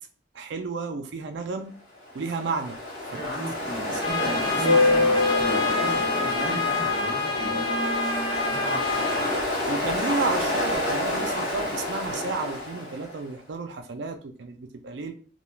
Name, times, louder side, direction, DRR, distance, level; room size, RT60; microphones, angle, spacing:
voice 1, 0.3-1.7 2.1-2.8 3.1-3.2 3.8-4.9 8.9-9.3 9.7-15.1, right 3 dB, 70° right, 6 dB, 0.4 m, -32 dB
Ocean, 2.1-13.2, left 2 dB, 45° left, 0.9 m, -27 dB
voice 2, 3.1-7.7 8.5-8.9, equal, 75° left, -3 dB, 1.1 m, -34 dB
Trumpet, 4.0-9.4, left 4 dB, 25° left, 0.3 m, -29 dB
2.3 x 2.3 x 3.0 m, 0.41 s
head